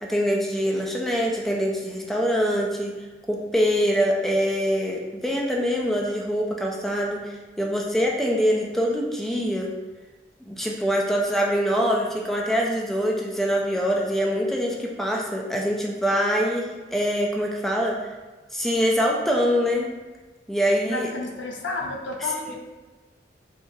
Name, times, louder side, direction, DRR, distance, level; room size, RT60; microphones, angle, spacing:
voice 1, 0.0-2.9 3.3-9.7 10.5-18.1 18.5-19.9 20.5-21.1 22.5-22.6, equal, ahead, -2 dB, 0.3 m, -24 dB
voice 2, 20.9-22.6, left 3 dB, 70° left, 1 dB, 0.5 m, -31 dB
4.5 x 2.4 x 2.6 m, 1.2 s
head